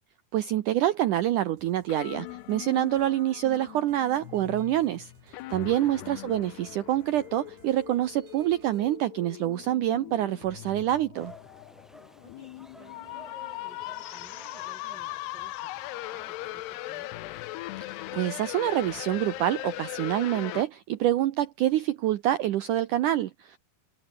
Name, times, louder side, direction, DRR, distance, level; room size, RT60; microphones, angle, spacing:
voice 1, 0.3-11.3 18.1-23.6, right 13 dB, 75° right, 1.9 m, -26 dB
sound 1, 1.6-9.0, right 5 dB, 55° right, 6.7 m, -60 dB
sound 2, 1.9-20.6, left 18 dB, 85° left, 2.9 m, -40 dB
voice 2, 5.8-6.1 12.2-17.2, right 2 dB, 25° right, 5.8 m, -55 dB
sound 3, 11.1-20.7, equal, ahead, 2.8 m, -53 dB
omnidirectional pair, 4.7 m